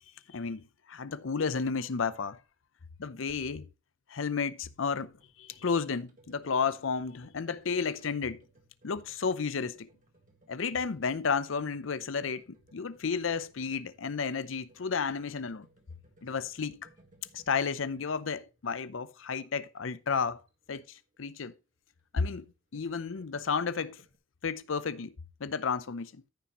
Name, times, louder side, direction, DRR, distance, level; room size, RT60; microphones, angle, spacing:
voice 1, 0.3-2.4 3.0-3.7 4.1-5.1 5.4-8.4 8.8-9.9 10.5-15.7 16.2-16.9 17.3-20.4 20.7-21.5 22.1-24.0 24.4-26.2, left 5 dB, 75° left, 0.6 m, -32 dB
sound 1, 4.8-21.2 22.3-24.2, right 2 dB, 40° right, 1.7 m, -63 dB
14.0 x 5.8 x 3.0 m
head